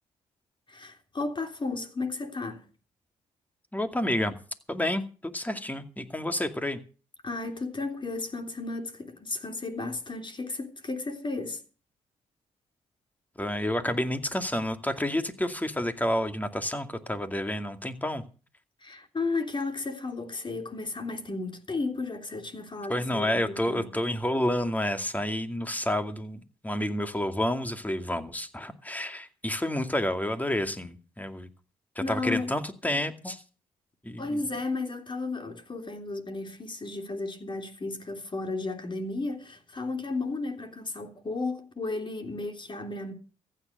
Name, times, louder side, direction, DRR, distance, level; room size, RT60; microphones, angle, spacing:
voice 1, 0.7-2.7 7.2-11.6 18.8-23.9 32.0-32.5 34.2-43.1, left 3 dB, 35° left, 3.4 m, -34 dB
voice 2, 3.7-4.3 4.7-6.8 13.4-18.2 22.9-31.5 32.1-33.4 34.0-34.4, left 1 dB, 10° left, 2.3 m, -29 dB
15.0 x 9.4 x 6.7 m
supercardioid pair, 60°, 14 cm